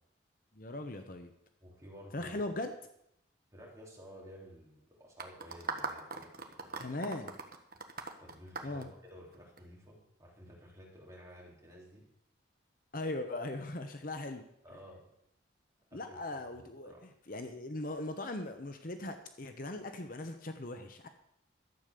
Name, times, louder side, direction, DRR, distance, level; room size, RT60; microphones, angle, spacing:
voice 1, 0.5-1.3 2.1-2.7 6.8-7.4 8.6-8.9 12.9-14.4 15.9-16.9 17.3-21.1, left 2 dB, 45° left, 7 dB, 0.9 m, -39 dB
voice 2, 1.6-2.4 3.5-6.9 8.2-12.1 14.6-15.0 15.9-16.2 16.5-17.0, equal, 15° right, -4 dB, 3.6 m, -53 dB
sound 1, 5.2-9.6, right 4 dB, 50° right, 1.3 m, -40 dB
12.5 x 8.1 x 6.8 m, 0.76 s
head